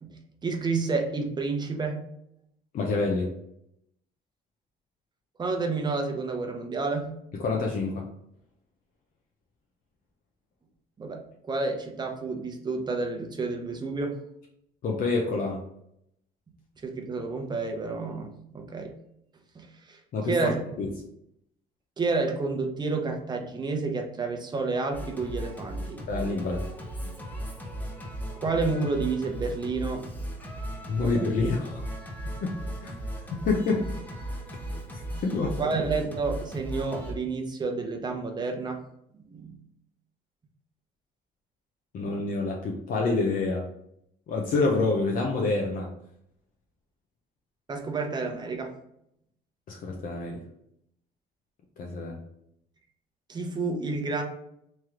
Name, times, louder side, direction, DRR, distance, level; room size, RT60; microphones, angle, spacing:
voice 1, 0.0-2.0 5.4-7.1 11.0-14.2 16.8-19.0 19.5-20.6 22.0-26.0 28.4-30.0 30.9-31.2 35.6-38.8 39.3-39.6 47.7-48.7 53.3-54.2, right 3 dB, 25° right, 3 dB, 0.8 m, -30 dB
voice 2, 2.7-3.3 7.4-8.1 14.8-15.6 20.1-20.5 20.8-20.9 26.1-26.6 30.9-31.9 32.4-32.6 32.8-32.9 33.3-33.9 34.9-35.7 41.9-43.7 44.3-45.9 49.7-50.4 51.8-52.2, left 3 dB, 55° left, 0 dB, 0.7 m, -27 dB
Singing, 24.9-37.1, right 1 dB, 10° left, 0.9 m, -36 dB
3.2 x 3.0 x 3.7 m, 0.74 s
cardioid pair, 110°, 17 cm